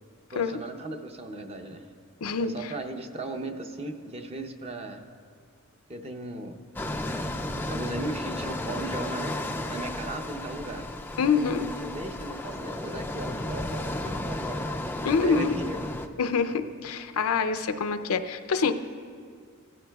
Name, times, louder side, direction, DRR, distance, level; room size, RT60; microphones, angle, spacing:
voice 1, 0.3-1.9 2.4-5.1 5.9-7.1 7.7-9.4 9.7-10.9 11.3-15.8, right 2 dB, 30° right, 5 dB, 0.7 m, -37 dB
voice 2, 2.2-2.7 11.2-11.7 15.0-15.6 16.2-18.7, left 5 dB, 80° left, 10 dB, 0.5 m, -26 dB
sound 1, 6.8-16.1, left 1 dB, 10° left, 0.3 m, -33 dB
16.5 x 13.0 x 2.3 m, 2.1 s
head